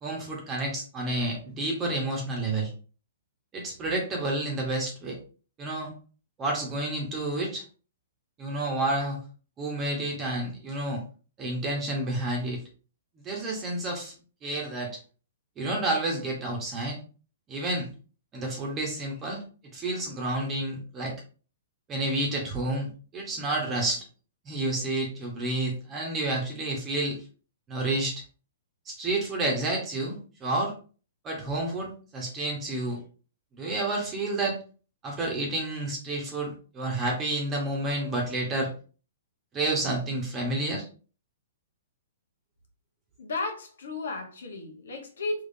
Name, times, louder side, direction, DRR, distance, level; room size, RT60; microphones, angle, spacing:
voice 1, 0.0-2.7 3.5-5.2 5.6-5.9 6.4-7.6 8.4-9.2 9.6-11.0 11.4-12.6 13.2-14.1 14.4-14.9 15.6-17.0 17.5-17.9 18.3-19.4 19.7-21.1 21.9-22.9 23.1-24.0 24.4-27.2 27.7-28.2 28.9-30.7 31.2-33.0 33.6-34.6 35.0-38.7 39.5-40.9, right 2 dB, 20° right, 1.1 m, -30 dB
voice 2, 43.2-45.4, left 2 dB, 75° left, 1.2 m, -34 dB
3.6 x 3.1 x 2.7 m
hypercardioid pair, 135°, 0 cm